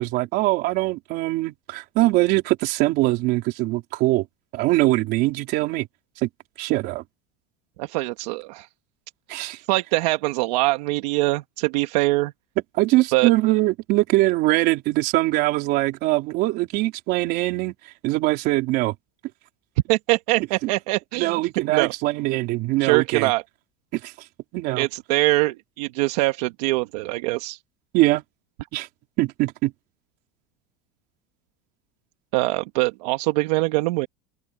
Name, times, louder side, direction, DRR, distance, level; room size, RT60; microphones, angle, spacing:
voice 1, 0.0-4.3 4.5-5.9 6.2-6.3 6.6-7.0 9.3-9.6 12.7-17.7 18.0-18.9 20.6-20.7 21.2-23.3 23.9-24.1 24.5-24.9 27.9-28.2 28.7-28.9 29.2-29.7, right 19 dB, 50° right, 3.7 m, -22 dB
voice 2, 7.8-8.7 9.7-12.3 13.1-13.3 19.9-21.4 21.7-21.9 22.8-23.4 24.8-27.6 32.3-34.1, right 21 dB, 75° right, 1.6 m, -23 dB
open air
cardioid pair, 165°, 21 cm